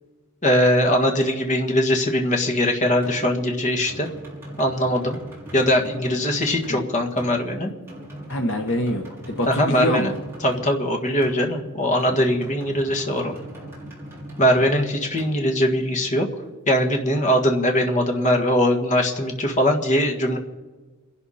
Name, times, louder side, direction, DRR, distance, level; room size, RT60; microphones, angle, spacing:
voice 1, 0.4-4.1 4.6-5.2 5.5-7.7 9.4-10.1 10.4-13.4 14.4-16.3 16.7-20.4, equal, 35° left, 2 dB, 1.7 m, -21 dB
sound 1, 3.0-16.6, right 1 dB, 10° right, 4.4 m, -40 dB
voice 2, 8.3-10.2, left 1 dB, 60° left, 4 dB, 1.3 m, -25 dB
28.5 x 11.5 x 4.3 m, 1.3 s
head